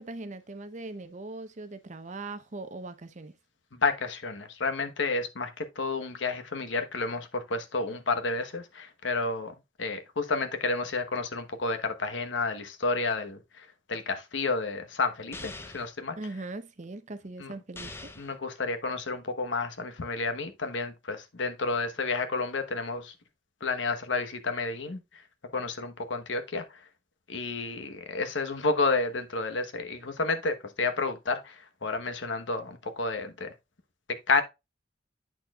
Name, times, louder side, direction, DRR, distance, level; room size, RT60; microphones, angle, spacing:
voice 1, 0.0-3.3 16.2-18.1, right 2 dB, 40° right, 0.7 m, -40 dB
voice 2, 3.8-9.5 9.8-16.2 17.4-17.5 18.2-23.1 23.6-25.0 25.5-26.6 27.3-33.5 34.3-34.4, left 3 dB, 80° left, 1.1 m, -30 dB
sound 1, 15.3-15.9 17.8-18.4, left 2 dB, 15° left, 0.6 m, -42 dB
8.6 x 6.3 x 2.3 m
head